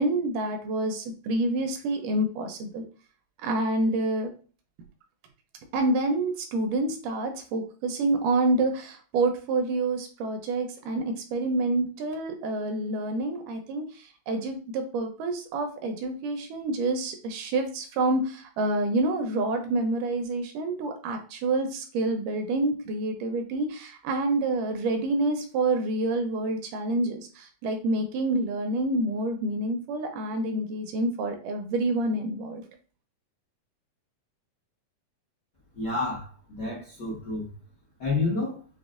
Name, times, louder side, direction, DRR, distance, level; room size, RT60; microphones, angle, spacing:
voice 1, 0.0-2.9 3.4-4.3 5.7-32.6, right 2 dB, 80° right, 5 dB, 2.0 m, -28 dB
voice 2, 35.7-37.5 38.0-38.6, left 3 dB, 85° left, -7 dB, 0.9 m, -30 dB
5.9 x 2.1 x 2.4 m, 0.38 s
omnidirectional pair, 3.8 m